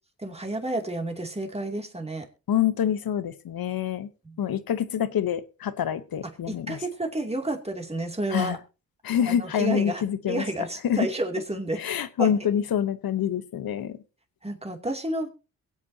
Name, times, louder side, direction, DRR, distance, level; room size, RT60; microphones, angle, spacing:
voice 1, 0.2-2.3 4.2-4.4 6.2-8.6 9.2-11.8 12.2-12.3 14.4-15.3, right 1 dB, 15° right, 4 dB, 2.6 m, -31 dB
voice 2, 2.5-4.1 4.4-6.8 8.3-8.6 9.0-10.4 10.8-11.1 11.8-14.0, left 9 dB, 75° left, 14 dB, 1.0 m, -26 dB
22.5 x 8.3 x 2.8 m, 0.31 s
cardioid pair, 65°, 36 cm